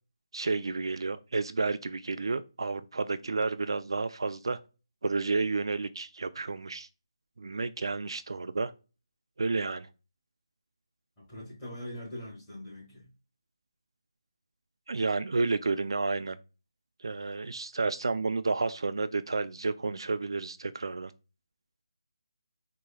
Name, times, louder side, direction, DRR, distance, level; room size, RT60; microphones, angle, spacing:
voice 1, 0.3-4.6 5.0-6.9 7.4-8.7 9.4-9.9 14.9-16.4 17.0-21.1, right 3 dB, 65° right, 0.3 m, -31 dB
voice 2, 11.2-13.1, left 1 dB, 10° left, 1.6 m, -42 dB
4.7 x 2.8 x 2.3 m
hypercardioid pair, 175°, 3 cm